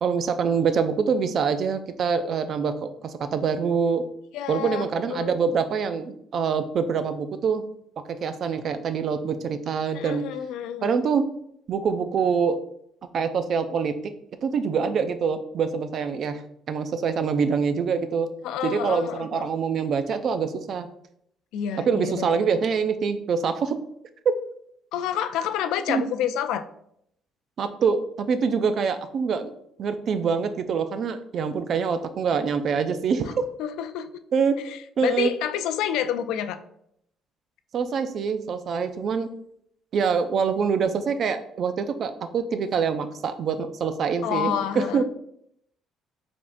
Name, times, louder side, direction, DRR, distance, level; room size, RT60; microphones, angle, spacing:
voice 1, 0.0-4.0 4.5-7.6 8.1-10.2 10.8-11.3 11.7-12.6 13.1-13.9 14.4-16.4 16.7-18.3 18.6-20.9 21.9-23.8 25.9-26.0 27.6-29.5 29.8-33.3 34.3-34.5 35.0-35.3 37.7-39.3 39.9-45.0, right 6 dB, 45° right, 10 dB, 0.4 m, -25 dB
voice 2, 4.3-5.4 9.9-10.9 18.4-19.5 21.5-22.5 24.9-26.6 33.6-34.1 34.6-36.6 44.2-45.0, left 9 dB, 85° left, 11 dB, 0.3 m, -29 dB
4.8 x 3.5 x 2.5 m, 0.72 s
cardioid pair, 140°, 0 cm